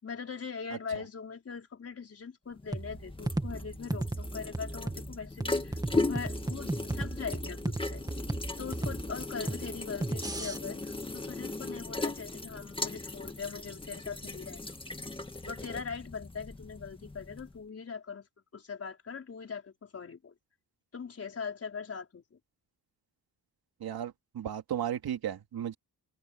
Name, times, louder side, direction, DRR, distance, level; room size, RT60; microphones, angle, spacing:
voice 1, 0.0-8.0 8.6-14.7 15.4-18.3 18.5-20.3 20.9-22.4, left 6 dB, 40° left, 4.9 m, -41 dB
sound 1, 2.6-17.6, left 2 dB, 15° left, 1.8 m, -38 dB
sound 2, 2.7-10.6, right 2 dB, 10° right, 2.2 m, -36 dB
voice 2, 23.8-25.7, right 10 dB, 75° right, 2.8 m, -35 dB
wide cardioid pair, 150°, 38 cm